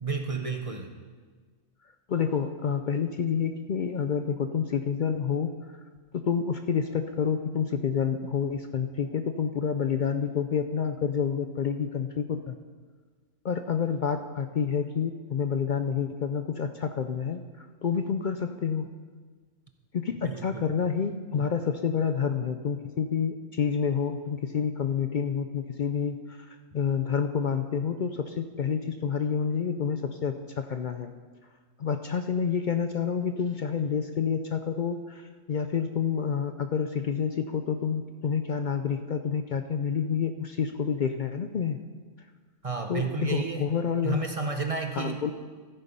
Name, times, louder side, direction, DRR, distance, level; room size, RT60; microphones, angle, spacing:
voice 1, 0.0-0.9 20.2-20.6 42.6-43.6 44.0-45.2, right 4 dB, 35° right, 5 dB, 0.7 m, -31 dB
voice 2, 2.1-5.5 6.1-12.6 13.4-18.9 19.9-31.1 31.8-41.8 42.9-44.3 44.9-45.3, left 7 dB, 60° left, 8 dB, 0.5 m, -28 dB
14.0 x 8.2 x 5.4 m, 1.5 s
omnidirectional pair, 1.3 m